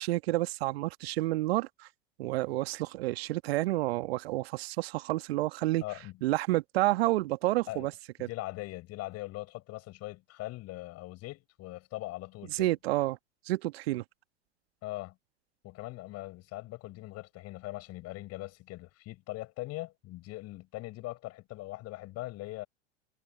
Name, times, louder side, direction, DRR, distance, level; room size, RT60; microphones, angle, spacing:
voice 1, 0.0-1.9 2.2-5.8 6.2-7.9 8.2-8.3 12.5-13.2 13.5-14.0, right 18 dB, 60° right, 1.6 m, -29 dB
voice 2, 5.8-6.2 7.7-7.9 8.2-12.7 14.8-15.2 15.6-22.7, left 18 dB, 45° left, 7.9 m, -41 dB
figure-of-eight pair, 85°, 35 cm